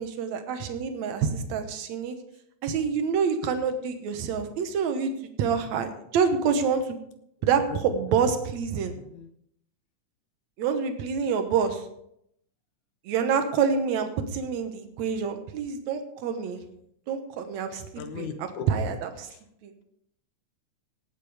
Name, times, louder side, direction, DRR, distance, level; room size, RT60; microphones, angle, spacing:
voice 1, 0.0-2.2 2.6-5.1 5.4-7.0 7.4-8.9 10.6-11.9 13.1-16.6 17.1-17.9 18.1-18.3 18.7-19.3 19.6-19.7, right 6 dB, 70° right, 7 dB, 2.4 m, -27 dB
voice 2, 8.9-9.3 17.7-18.7 19.2-19.4, left 6 dB, 80° left, 7 dB, 2.6 m, -38 dB
18.5 x 8.4 x 3.5 m, 0.74 s
omnidirectional pair, 3.5 m